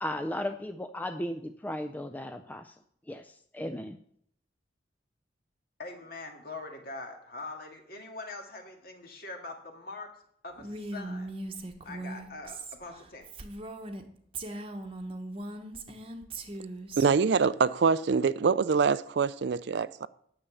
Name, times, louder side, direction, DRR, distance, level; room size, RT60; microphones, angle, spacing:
voice 1, 0.0-2.8 3.1-4.0, left 1 dB, 10° left, 0.4 m, -36 dB
voice 2, 5.8-10.1 10.4-11.3 11.8-13.2, left 3 dB, 55° left, 2.0 m, -43 dB
Female speech woman speaking, 10.6-14.0 14.3-17.1, right 2 dB, 30° right, 1.0 m, -39 dB
voice 3, 17.0-20.1, right 5 dB, 65° right, 0.4 m, -25 dB
10.0 x 6.8 x 7.0 m
head